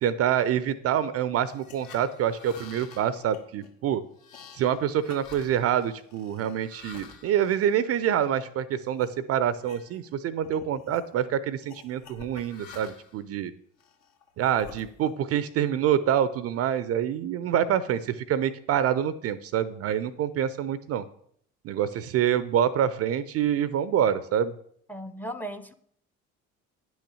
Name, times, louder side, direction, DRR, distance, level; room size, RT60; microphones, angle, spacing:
voice 1, 0.0-4.0 4.5-13.5 14.4-21.0 21.6-24.5, right 9 dB, 35° right, 16 dB, 0.5 m, -26 dB
sound 1, 1.4-8.4 8.9-9.1 9.5-10.2 10.4-11.1 11.7-13.2 13.8-15.3, left 6 dB, 60° left, 1.4 m, -49 dB
voice 2, 24.9-25.7, right 1 dB, 5° left, 15 dB, 0.6 m, -36 dB
9.9 x 6.2 x 6.3 m, 0.65 s
figure-of-eight pair, 55°, 42 cm